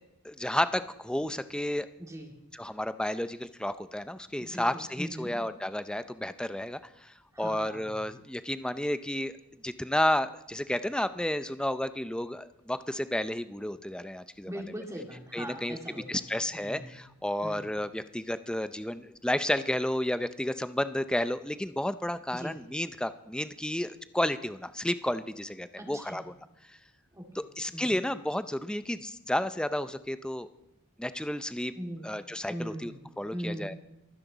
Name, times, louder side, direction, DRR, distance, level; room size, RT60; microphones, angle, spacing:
voice 1, 0.2-1.9 2.5-9.4 9.6-14.5 15.3-15.8 16.1-26.3 27.3-30.5 31.0-31.7 32.0-33.7, left 1 dB, 5° left, 12 dB, 0.5 m, -32 dB
voice 2, 2.0-2.3 4.4-5.3 7.3-8.0 14.4-16.9 17.4-17.7 22.3-22.6 25.8-26.2 27.1-27.3 27.7-28.0 31.7-32.1 32.5-33.0 33.3-33.7, equal, 15° right, 2 dB, 2.2 m, -40 dB
24.0 x 9.8 x 4.0 m, 0.90 s
head